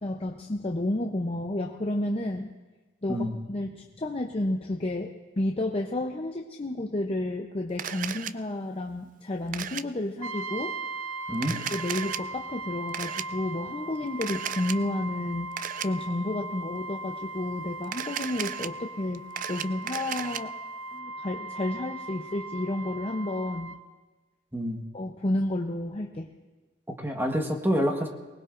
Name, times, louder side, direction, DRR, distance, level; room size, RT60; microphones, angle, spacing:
voice 1, 0.0-2.5 3.0-10.7 11.7-15.5 15.8-19.2 19.5-20.5 20.9-23.7 24.9-26.3, left 1 dB, 30° left, 2 dB, 0.7 m, -31 dB
Camera, 7.8-8.3 9.5-9.8 11.3-12.2 12.9-13.2 14.2-14.8 15.6-15.9 17.8-18.7 19.1-20.4, right 9 dB, 40° right, 0.4 m, -34 dB
Brass instrument, 10.2-23.8, right 2 dB, 75° right, 0.7 m, -38 dB
voice 2, 24.5-24.8 26.9-28.1, equal, 10° right, 2 dB, 1.3 m, -27 dB
24.0 x 19.0 x 2.5 m, 1.2 s
head